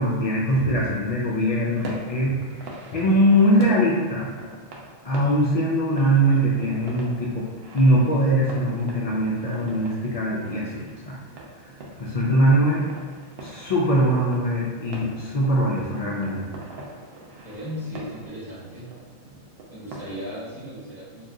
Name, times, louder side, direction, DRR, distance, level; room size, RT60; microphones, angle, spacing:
voice 1, 0.0-2.4 2.9-4.3 5.0-7.5 7.7-11.2 12.0-12.8 13.4-16.4, equal, 55° left, -5 dB, 0.4 m, -21 dB
sound 1, 1.2-20.2, right 2 dB, 60° right, 0.7 m, -43 dB
voice 2, 17.4-18.9 19.7-21.3, equal, ahead, -10 dB, 1.0 m, -36 dB
2.7 x 2.3 x 3.6 m, 1.5 s
omnidirectional pair, 1.3 m